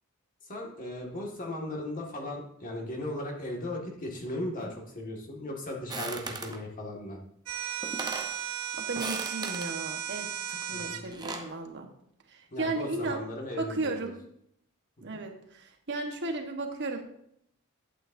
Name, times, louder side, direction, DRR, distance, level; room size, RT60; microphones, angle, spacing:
voice 1, 0.4-7.2 10.7-11.0 12.5-14.1 15.1-15.2, left 1 dB, 40° left, -1 dB, 1.9 m, -37 dB
sound 1, 5.9-6.6 7.5-7.6 7.8-8.4 8.9-9.7 10.9-11.5, right 3 dB, 20° right, 0.8 m, -37 dB
sound 2, 7.5-11.0, right 9 dB, 85° right, 0.9 m, -35 dB
voice 2, 8.4-11.9 12.3-13.2 13.6-14.1 15.0-17.0, right 2 dB, 55° right, 4 dB, 1.2 m, -35 dB
11.0 x 8.6 x 2.6 m, 0.72 s
head